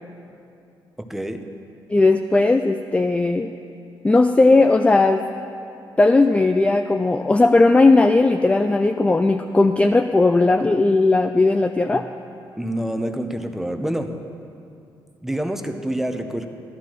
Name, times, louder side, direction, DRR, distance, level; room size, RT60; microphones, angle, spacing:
voice 1, 1.1-1.4 12.6-14.1 15.2-16.5, right 1 dB, 5° right, 6 dB, 0.7 m, -26 dB
voice 2, 1.9-3.5 4.0-5.2 6.0-12.1, left 2 dB, 15° left, 7 dB, 0.4 m, -17 dB
13.0 x 11.5 x 3.0 m, 2.6 s
cardioid pair, 80°, 9 cm